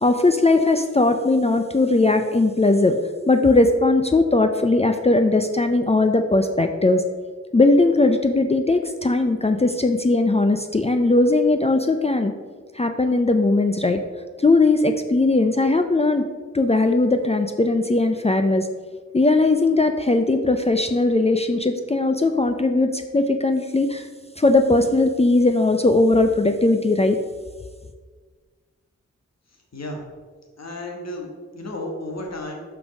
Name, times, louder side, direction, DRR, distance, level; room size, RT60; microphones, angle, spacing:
voice 1, 0.0-3.0 3.3-7.0 7.5-12.3 12.7-14.0 14.4-16.2 16.5-18.7 19.1-24.1 24.4-27.2, left 2 dB, 20° left, 6 dB, 0.5 m, -19 dB
voice 2, 29.5-30.0 30.6-32.6, left 1 dB, 60° left, 1 dB, 1.6 m, -33 dB
5.8 x 5.3 x 5.1 m, 1.5 s
cardioid pair, 60°, 29 cm